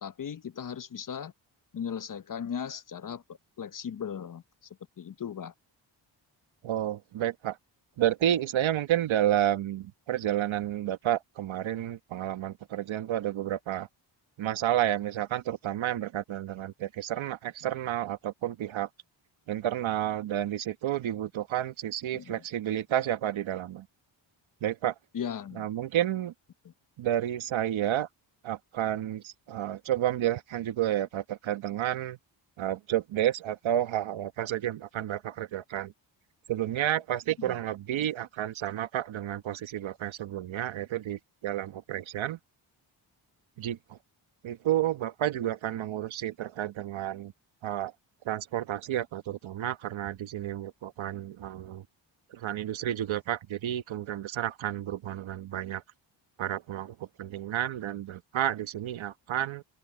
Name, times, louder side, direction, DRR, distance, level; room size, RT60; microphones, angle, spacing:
voice 1, 0.0-1.3 1.7-3.2 3.6-4.4 5.0-5.5 22.1-22.2 25.1-25.7 37.5-37.6, left 7 dB, 45° left, 0.9 m, -37 dB
voice 2, 6.6-7.6 8.0-13.9 14.4-18.9 19.5-23.9 24.6-24.9 25.5-26.3 27.0-28.1 28.4-32.2 32.6-35.9 36.5-42.4 43.6-44.0 44.4-47.3 47.6-47.9 48.2-51.8 52.3-55.8 56.4-59.6, right 12 dB, 80° right, 1.3 m, -31 dB
open air
cardioid pair, 85°, 47 cm